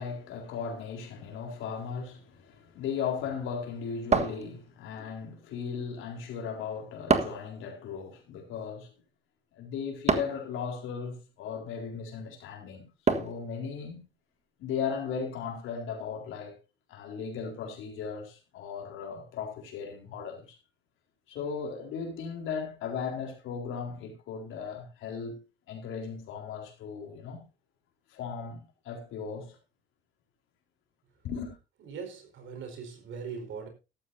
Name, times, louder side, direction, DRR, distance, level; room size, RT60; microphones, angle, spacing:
voice 1, 0.0-8.9 9.5-12.8 13.1-14.0 14.6-16.5 16.9-20.6 21.3-25.4 25.7-27.4 28.1-29.6 31.2-31.6, left 6 dB, 90° left, 4.0 m, -37 dB
sound 1, 4.1-5.0 7.1-7.5 10.1-10.5 13.1-13.5, right 4 dB, 35° right, 1.5 m, -27 dB
voice 2, 31.8-33.7, right 6 dB, 75° right, 4.7 m, -40 dB
14.0 x 12.5 x 2.7 m
cardioid pair, 90°, 20 cm